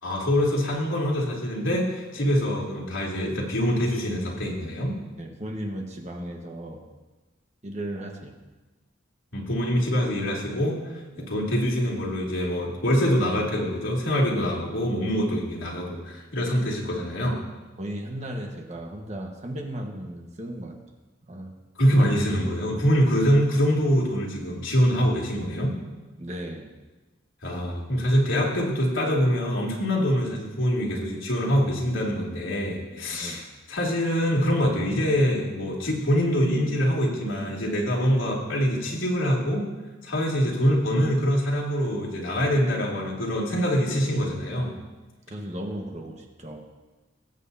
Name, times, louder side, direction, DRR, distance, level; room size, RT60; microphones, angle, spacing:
voice 1, 0.0-5.0 9.3-10.8 11.3-17.4 21.8-25.7 27.4-39.7 40.0-44.7, equal, 85° left, -4 dB, 2.8 m, -24 dB
voice 2, 5.2-6.9 7.6-8.4 11.1-11.3 17.8-20.8 21.3-21.5 26.2-26.7 33.1-33.4 45.3-46.7, right 1 dB, 35° right, 2 dB, 1.3 m, -36 dB
19.5 x 8.2 x 2.7 m, 1.2 s
head